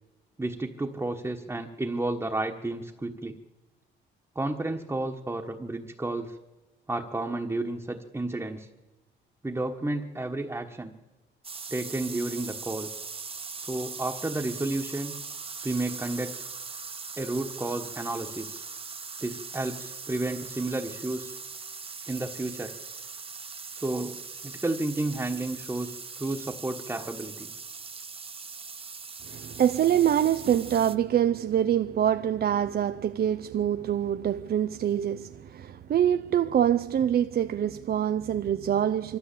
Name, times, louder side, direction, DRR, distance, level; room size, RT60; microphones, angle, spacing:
voice 1, 0.4-3.4 4.3-6.4 6.9-8.7 9.4-10.9 11.7-12.9 13.6-15.1 15.6-16.4 17.2-18.6 19.2-21.3 22.1-22.7 23.7-24.2 24.4-27.5, right 2 dB, 15° right, 1.4 m, -31 dB
sound 1, 11.4-31.0, right 5 dB, 30° right, 1.1 m, -40 dB
voice 2, 29.3-39.2, right 10 dB, 50° right, 0.6 m, -25 dB
24.0 x 13.0 x 8.5 m
cardioid pair, 90°, 20 cm